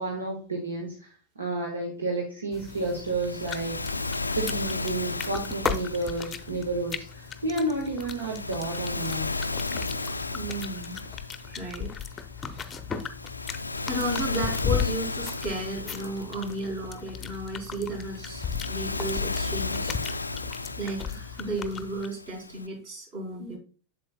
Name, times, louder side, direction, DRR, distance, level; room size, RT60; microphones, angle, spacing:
voice 1, 0.0-3.8 4.3-9.3, right 2 dB, 75° right, 0 dB, 1.4 m, -31 dB
sound 1, 2.5-22.1, left 7 dB, 20° left, 0.7 m, -36 dB
Waves surf, 2.7-22.7, left 3 dB, 80° left, 0.3 m, -35 dB
voice 2, 10.3-11.0 11.4-11.9 13.8-19.9 20.8-23.6, right 1 dB, 45° right, 1 dB, 3.3 m, -34 dB
7.7 x 7.6 x 2.2 m, 0.38 s
figure-of-eight pair, 90°, 0 cm